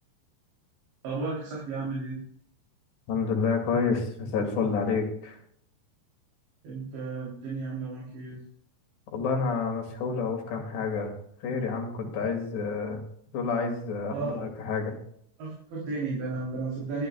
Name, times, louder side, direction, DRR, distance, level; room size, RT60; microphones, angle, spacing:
voice 1, 1.0-2.2 6.6-8.4 14.1-14.5 15.4-17.1, right 3 dB, 75° right, -5 dB, 5.6 m, -33 dB
voice 2, 3.1-5.4 9.1-11.1 11.4-13.0 13.3-15.0, left 5 dB, 70° left, 2 dB, 4.4 m, -29 dB
23.0 x 13.0 x 2.3 m, 0.64 s
omnidirectional pair, 5.2 m